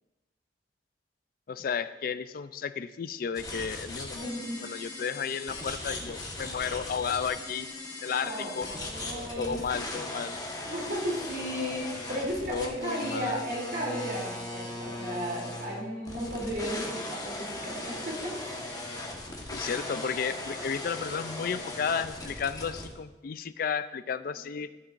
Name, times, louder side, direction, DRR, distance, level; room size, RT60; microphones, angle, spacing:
voice 1, 1.5-4.3 4.6-7.7 8.0-8.7 9.4-10.4 12.5-13.5 19.5-24.7, left 6 dB, 55° left, 13 dB, 0.4 m, -33 dB
sound 1, 3.3-22.9, left 2 dB, 20° left, 1.2 m, -38 dB
voice 2, 4.2-4.6 8.2-9.6 10.6-18.7, equal, 55° right, -4 dB, 2.9 m, -34 dB
14.0 x 6.8 x 2.5 m, 1.1 s
head